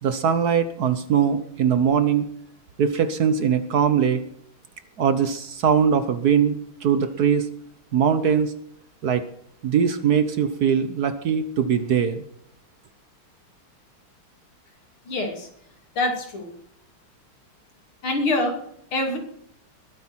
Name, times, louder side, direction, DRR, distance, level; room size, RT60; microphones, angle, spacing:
voice 1, 0.0-2.3 2.8-4.2 5.0-7.5 7.9-8.5 9.0-9.2 9.6-12.2, right 7 dB, 55° right, 11 dB, 1.2 m, -21 dB
voice 2, 15.1-15.5 16.0-16.5 18.0-18.6 18.9-19.2, left 2 dB, 85° left, 3 dB, 3.8 m, -25 dB
21.0 x 9.5 x 4.4 m, 0.69 s
omnidirectional pair, 2.3 m